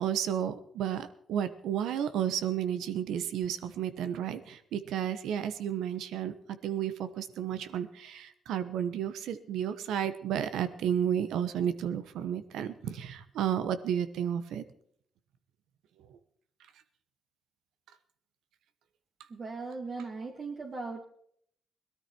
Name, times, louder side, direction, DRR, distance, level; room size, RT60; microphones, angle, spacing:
voice 1, 0.0-6.4 6.6-14.6, right 9 dB, 85° right, 11 dB, 1.1 m, -32 dB
voice 2, 19.3-21.0, right 3 dB, 50° right, 1 dB, 2.1 m, -38 dB
18.5 x 13.0 x 4.5 m, 0.65 s
supercardioid pair, 60°, 0 cm